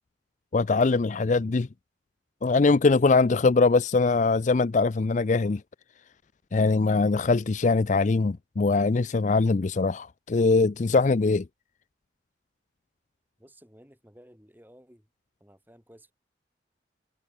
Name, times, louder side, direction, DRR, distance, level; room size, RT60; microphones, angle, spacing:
voice 1, 0.5-1.7 2.4-5.6 6.5-11.4, left 3 dB, 40° left, 0.4 m, -22 dB
voice 2, 13.4-15.1 15.4-16.1, equal, 10° right, 6.9 m, -55 dB
head